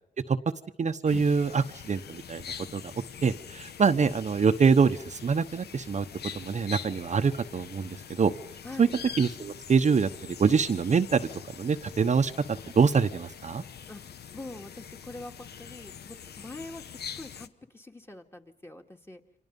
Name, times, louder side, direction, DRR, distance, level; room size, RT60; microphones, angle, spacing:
voice 1, 0.8-2.4 2.7-2.8 3.2-6.0 6.3-8.3 8.8-8.9 9.2-11.3 11.6-12.3 12.7-13.6, right 5 dB, 45° right, 7 dB, 1.0 m, -25 dB
sound 1, 1.0-17.5, left 8 dB, 85° left, 1.1 m, -44 dB
voice 2, 13.9-19.2, left 2 dB, 15° left, 3 dB, 2.1 m, -44 dB
29.5 x 25.5 x 5.4 m, 0.65 s
cardioid pair, 105°, 16 cm